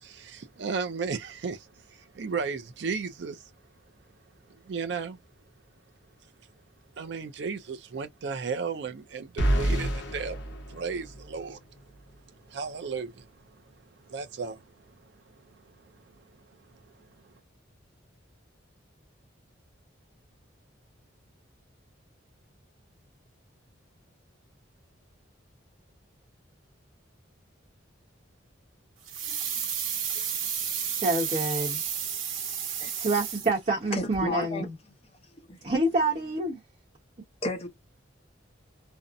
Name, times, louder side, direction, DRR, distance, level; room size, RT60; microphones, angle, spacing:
voice 1, 0.0-3.4 4.5-5.2 7.0-11.6 12.5-13.3 14.1-14.6, right 5 dB, 60° right, 0.4 m, -34 dB
sound 1, 9.4-11.5, right 1 dB, 65° left, 0.8 m, -28 dB
sound 2, 29.1-33.9 34.1-34.2, right 8 dB, 90° right, 0.8 m, -32 dB
voice 2, 30.8-31.8 33.0-34.7 35.6-36.6, right 2 dB, 35° right, 0.8 m, -27 dB
voice 3, 33.9-34.7 35.3-35.7 37.4-37.7, left 1 dB, 30° left, 0.7 m, -32 dB
2.6 x 2.0 x 2.4 m
head